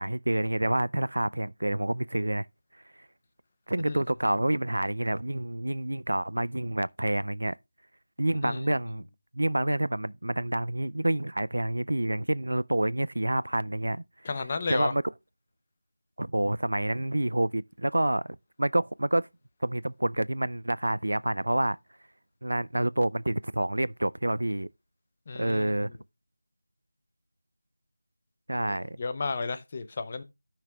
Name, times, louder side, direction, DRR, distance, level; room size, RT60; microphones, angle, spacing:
voice 1, 0.0-2.5 3.7-7.6 8.2-9.1 9.3-14.0 14.7-15.0 16.2-19.3 19.6-21.8 22.4-24.7 25.3-25.9 28.5-29.0, right 1 dB, 85° right, 0.4 m, -28 dB
voice 2, 14.2-14.9 25.3-25.9 28.6-30.2, left 4 dB, 25° left, 0.6 m, -33 dB
16.0 x 5.8 x 2.3 m
figure-of-eight pair, 175°, 0 cm